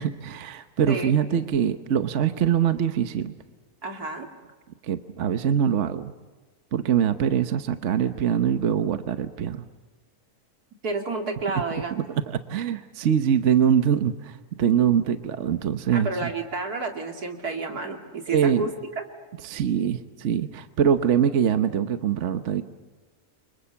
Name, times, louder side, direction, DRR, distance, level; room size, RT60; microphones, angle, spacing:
voice 1, 0.0-3.3 4.8-6.1 6.7-9.7 12.3-16.3 18.3-18.7 19.4-22.6, right 8 dB, 55° right, 10 dB, 1.2 m, -23 dB
voice 2, 0.9-1.2 3.8-4.3 10.8-12.0 15.9-18.7 19.0-19.1, right 3 dB, 80° right, 3 dB, 3.2 m, -30 dB
30.0 x 25.0 x 7.0 m, 1.4 s
omnidirectional pair, 1.6 m